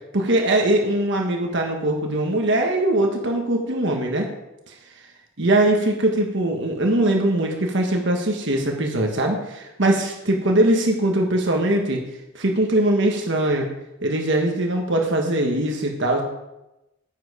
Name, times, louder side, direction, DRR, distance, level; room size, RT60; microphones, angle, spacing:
voice 1, 0.1-4.3 4.7-4.8 5.4-12.0 12.3-13.7 14.0-16.2, right 1 dB, 60° right, 2 dB, 1.4 m, -21 dB
9.7 x 9.0 x 5.0 m, 0.95 s
head